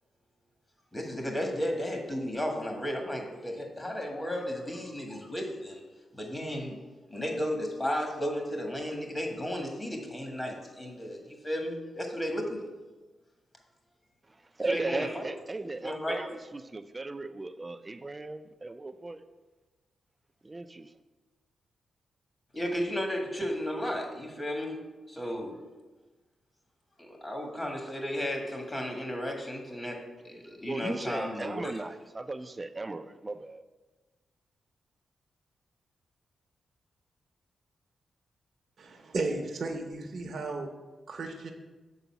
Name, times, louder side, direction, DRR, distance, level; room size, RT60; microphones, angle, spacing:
voice 1, 0.9-5.8 6.1-6.8 7.1-12.6 14.7-15.3 15.8-16.2 22.5-24.8 25.1-25.6 27.0-30.0 30.2-31.8, equal, 20° left, 2 dB, 1.6 m, -34 dB
voice 2, 14.6-19.2 20.4-20.9 30.7-33.6, right 2 dB, 25° right, 10 dB, 0.4 m, -36 dB
voice 3, 38.8-40.7 41.1-41.5, right 3 dB, 60° right, 2 dB, 0.8 m, -34 dB
6.9 x 4.0 x 5.8 m, 1.2 s
cardioid pair, 70°, 0 cm